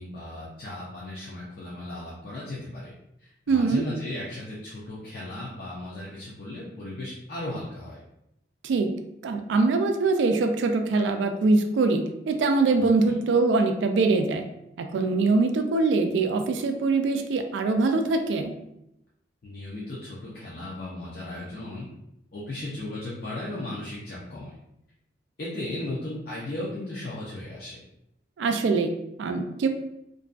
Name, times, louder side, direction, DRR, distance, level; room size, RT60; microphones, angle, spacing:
voice 1, 0.0-2.9 3.2-8.0 12.8-13.2 19.4-21.9 22.3-24.6 25.4-27.8, left 1 dB, 55° left, -7 dB, 0.5 m, -36 dB
voice 2, 3.5-3.8 8.6-8.9 9.2-14.4 14.8-18.5 28.4-29.7, right 3 dB, 80° right, 6 dB, 0.3 m, -23 dB
2.5 x 2.2 x 2.4 m, 0.82 s
head